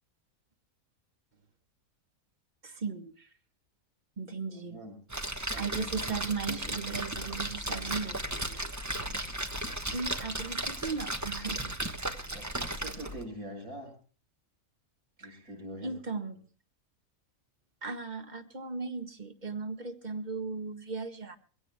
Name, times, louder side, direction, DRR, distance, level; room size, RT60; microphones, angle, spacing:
voice 1, 2.6-3.3 4.2-4.8 5.6-8.6 9.9-11.7 15.2-15.5 15.8-16.4 17.8-21.4, right 4 dB, 35° right, 7 dB, 1.6 m, -37 dB
voice 2, 4.6-5.0 5.5-6.2 6.5-6.6 9.1-9.4 12.3-14.0 15.2-16.0, equal, 80° right, 0 dB, 7.0 m, -44 dB
Splash splatter, 5.1-13.2, right 1 dB, 15° right, 1.1 m, -35 dB
24.0 x 17.0 x 2.2 m, 0.40 s
omnidirectional pair, 1.5 m